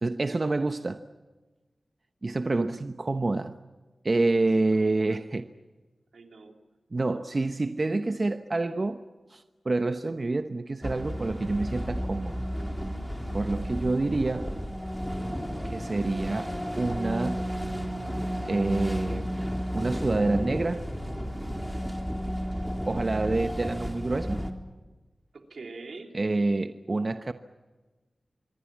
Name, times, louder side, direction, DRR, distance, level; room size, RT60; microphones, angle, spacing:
voice 1, 0.0-1.0 2.2-3.6 4.0-5.5 6.9-9.0 9.3-12.5 13.3-14.5 15.6-17.4 18.4-19.4 19.7-20.8 22.8-24.4 26.1-27.3, right 2 dB, 50° right, 1.0 m, -27 dB
voice 2, 4.6-5.2 6.1-6.5 25.3-26.1, right 3 dB, 85° right, 3.0 m, -44 dB
sound 1, 10.8-24.5, equal, ahead, 3.7 m, -32 dB
26.0 x 22.0 x 7.5 m
cardioid pair, 50°, 0 cm